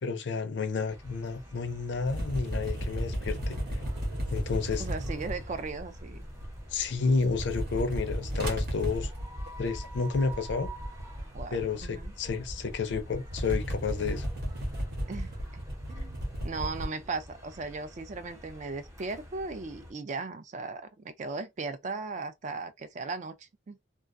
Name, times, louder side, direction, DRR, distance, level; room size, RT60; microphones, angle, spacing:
voice 1, 0.0-3.8 4.3-4.8 6.7-9.1 9.6-10.7 11.5-14.3, left 4 dB, 65° left, 0.5 m, -31 dB
sound 1, 0.9-19.9, right 1 dB, 15° right, 0.7 m, -49 dB
sound 2, 2.1-6.8 7.1-16.9, equal, 60° right, 0.9 m, -35 dB
voice 2, 4.8-6.3 11.3-12.1 15.1-15.6 15.9-23.8, right 3 dB, 40° right, 0.4 m, -37 dB
2.3 x 2.2 x 2.4 m
head